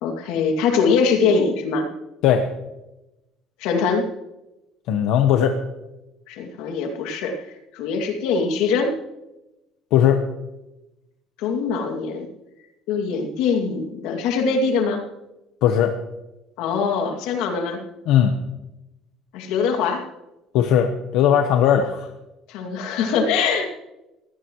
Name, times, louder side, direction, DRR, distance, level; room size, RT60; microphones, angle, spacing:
voice 1, 0.0-1.9 3.6-4.1 6.3-7.5 7.7-8.9 11.4-12.3 12.9-15.0 16.6-17.8 19.3-20.0 22.5-23.7, left 5 dB, 85° left, 3 dB, 2.4 m, -22 dB
voice 2, 4.9-5.5 9.9-10.2 15.6-15.9 18.1-18.4 20.5-22.1, left 9 dB, 65° left, 5 dB, 1.1 m, -18 dB
22.0 x 16.5 x 3.1 m, 0.99 s
cardioid pair, 170°, 0 cm